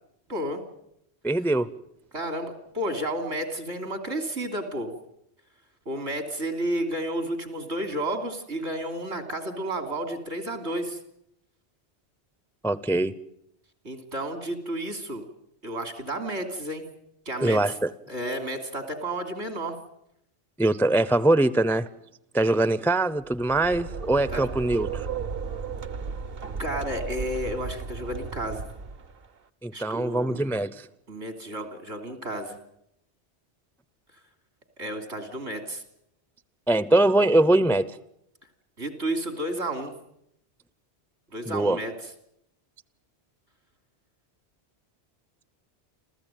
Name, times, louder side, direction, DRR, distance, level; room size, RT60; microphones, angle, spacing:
voice 1, 0.3-0.6 2.1-4.9 5.9-11.0 13.8-15.3 15.6-16.9 17.3-17.7 18.1-19.8 24.3-24.5 26.6-28.6 29.7-30.4 31.1-32.6 34.8-35.8 38.8-39.9 41.3-41.9, right 1 dB, 75° right, 7 dB, 3.5 m, -31 dB
voice 2, 1.2-1.7 12.6-13.1 17.4-17.9 20.6-21.9 22.3-25.1 29.6-30.7 36.7-37.9 41.5-41.8, right 2 dB, ahead, 16 dB, 0.6 m, -22 dB
sound 1, 23.2-29.3, right 5 dB, 60° right, 1.2 m, -35 dB
28.5 x 14.5 x 9.2 m, 0.78 s
omnidirectional pair, 1.1 m